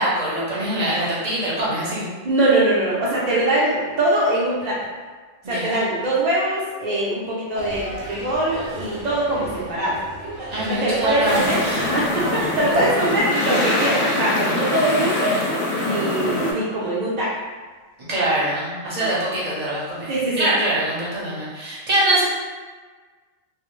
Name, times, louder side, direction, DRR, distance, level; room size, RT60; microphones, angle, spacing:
voice 1, 0.0-2.1 5.4-5.8 10.5-11.9 12.3-12.4 18.1-22.2, right 1 dB, 40° right, -7 dB, 0.7 m, -23 dB
voice 2, 2.2-4.8 5.5-10.0 10.7-15.4 15.8-17.3 18.8-19.1 20.1-20.5, right 1 dB, 65° right, -7 dB, 0.4 m, -22 dB
sound 1, 7.5-13.2, right 2 dB, 90° right, 1.0 m, -34 dB
sound 2, 11.2-16.5, left 1 dB, 60° left, 0.7 m, -24 dB
2.3 x 2.0 x 3.0 m, 1.4 s
omnidirectional pair, 1.3 m